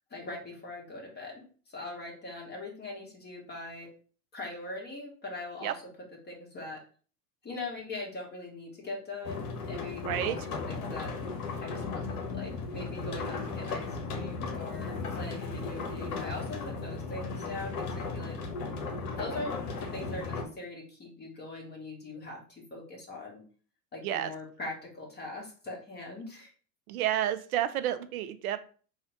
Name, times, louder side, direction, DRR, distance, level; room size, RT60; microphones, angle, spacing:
voice 1, 0.1-1.4 1.7-3.9 4.3-5.8 6.2-6.8 7.4-11.1 11.6-18.4 19.2-23.4 23.9-26.5, left 2 dB, 20° left, -2 dB, 1.5 m, -41 dB
sound 1, 9.2-20.5, left 4 dB, 65° left, 1.0 m, -36 dB
voice 2, 10.1-10.4 24.0-24.3 26.9-28.6, right 12 dB, 65° right, 10 dB, 0.6 m, -30 dB
3.6 x 2.4 x 4.5 m, 0.41 s
figure-of-eight pair, 80°, 47 cm